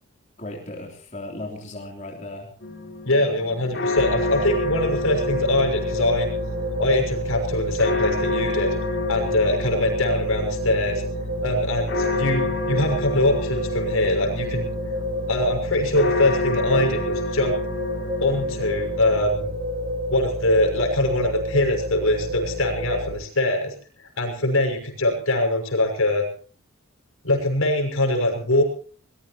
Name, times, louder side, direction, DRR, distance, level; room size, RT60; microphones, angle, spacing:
voice 1, 0.4-2.5, left 2 dB, 35° left, 0 dB, 3.4 m, -36 dB
sound 1, 2.6-19.2, left 3 dB, 55° left, 4.0 m, -31 dB
voice 2, 3.0-6.3 6.8-8.7 9.1-11.0 11.4-14.7 15.3-17.6 18.2-19.5 20.1-23.7 24.2-26.2 27.2-28.6, left 1 dB, 80° left, 4 dB, 6.2 m, -23 dB
sound 2, 4.0-23.1, equal, 45° right, 7.2 m, -28 dB
22.5 x 20.5 x 3.0 m, 0.41 s
head